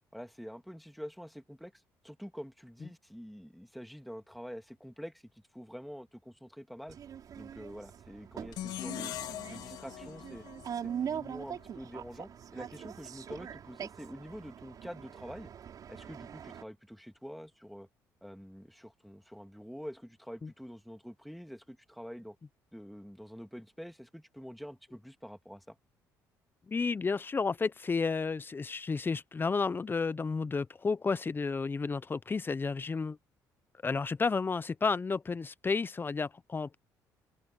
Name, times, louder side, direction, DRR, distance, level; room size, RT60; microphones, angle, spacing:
voice 1, 0.1-5.2 5.5-7.0 7.4-9.1 9.5-10.5 10.8-15.5 15.9-17.9 18.2-22.4 22.7-25.8, equal, ahead, 2.5 m, -46 dB
sound 1, 6.9-16.6, right 8 dB, 60° right, 6.0 m, -43 dB
sound 2, 8.5-11.7, left 13 dB, 75° left, 4.3 m, -42 dB
voice 2, 26.7-33.2 33.8-36.8, left 4 dB, 30° left, 0.8 m, -32 dB
open air
supercardioid pair, 80°, 7 cm